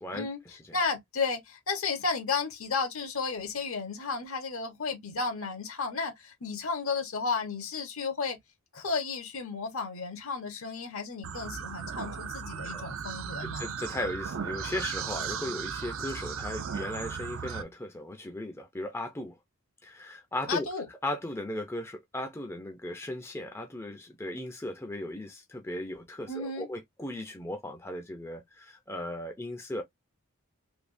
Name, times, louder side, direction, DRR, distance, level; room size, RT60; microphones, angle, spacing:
voice 1, 0.0-0.6 12.7-12.9 13.4-19.4 19.8-29.8, left 1 dB, 10° left, 0.5 m, -37 dB
voice 2, 0.7-8.4 8.7-13.7 20.5-20.9 26.3-26.7, left 4 dB, 70° left, 1.1 m, -33 dB
sound 1, 11.2-17.6, right 7 dB, 65° right, 0.5 m, -36 dB
3.4 x 2.8 x 2.6 m
head